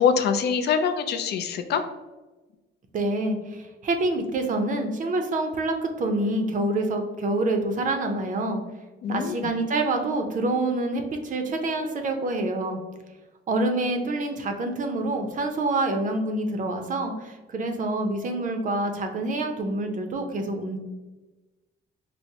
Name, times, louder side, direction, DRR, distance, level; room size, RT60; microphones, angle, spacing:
voice 1, 0.0-1.8 9.0-9.5, left 6 dB, 55° left, 7 dB, 0.4 m, -24 dB
voice 2, 2.9-8.6 9.1-12.8 13.5-20.8, right 2 dB, 40° right, 5 dB, 0.5 m, -27 dB
4.5 x 2.0 x 2.7 m, 1.2 s
cardioid pair, 135°, 20 cm